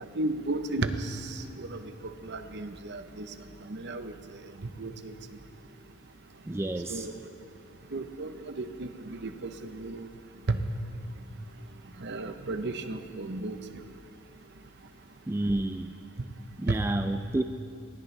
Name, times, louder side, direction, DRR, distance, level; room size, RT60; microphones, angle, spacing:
voice 1, 0.1-1.8 2.2-3.3 3.7-4.1 4.6-5.1 6.9-7.1 7.9-10.1 10.5-10.6 12.0-13.6 16.7-16.8, right 2 dB, 55° right, 8 dB, 0.8 m, -33 dB
voice 2, 6.5-7.1 15.3-15.9 16.6-17.4, right 1 dB, 10° right, 6 dB, 0.3 m, -29 dB
19.5 x 17.5 x 3.3 m, 2.5 s
head